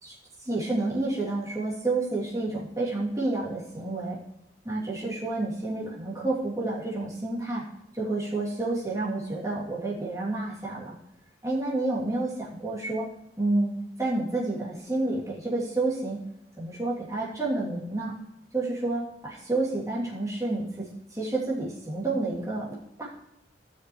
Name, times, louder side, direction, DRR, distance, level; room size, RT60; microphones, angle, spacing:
voice 1, 0.0-4.2 4.7-7.6 7.9-10.9 11.4-13.1 13.4-16.2 16.6-18.1 18.5-23.1, right 2 dB, 20° right, -7 dB, 2.8 m, -29 dB
16.5 x 6.5 x 3.2 m, 0.82 s
head